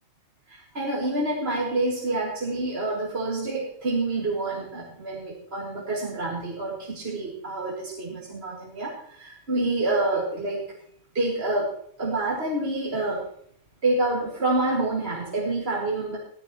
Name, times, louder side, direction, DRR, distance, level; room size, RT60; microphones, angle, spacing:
voice 1, 0.5-10.7 11.1-13.3 13.8-16.2, right 2 dB, 45° right, -4 dB, 2.3 m, -27 dB
17.0 x 14.0 x 3.0 m, 0.65 s
omnidirectional pair, 1.4 m